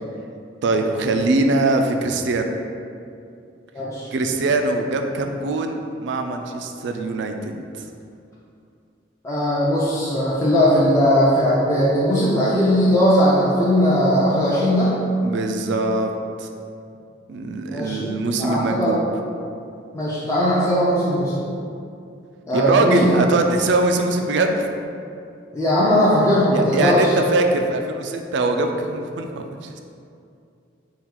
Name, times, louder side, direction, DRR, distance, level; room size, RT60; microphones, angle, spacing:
voice 1, 0.6-2.5 4.1-7.6 15.2-16.1 16.4-16.5 17.3-19.0 22.5-24.7 26.5-29.8, right 2 dB, 65° right, 5 dB, 0.3 m, -22 dB
voice 2, 3.7-4.1 9.2-14.9 17.7-19.0 19.9-21.5 22.5-23.2 25.5-27.1, equal, 15° left, -8 dB, 0.5 m, -19 dB
3.6 x 2.3 x 4.5 m, 2.5 s
head